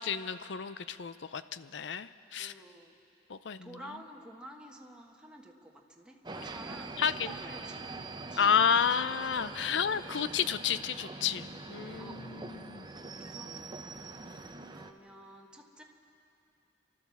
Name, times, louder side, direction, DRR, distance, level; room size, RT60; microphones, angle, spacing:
voice 1, 0.0-2.5 3.3-3.7 7.0-7.3 8.4-12.9, left 7 dB, 80° left, 14 dB, 0.6 m, -31 dB
voice 2, 2.4-2.9 3.6-7.9 8.3-8.6 10.1-10.3 12.0-15.8, right 1 dB, 5° right, 0 dB, 1.5 m, -51 dB
sound 1, 6.2-14.9, right 3 dB, 25° right, 0.7 m, -44 dB
29.0 x 12.5 x 7.2 m, 2.7 s
head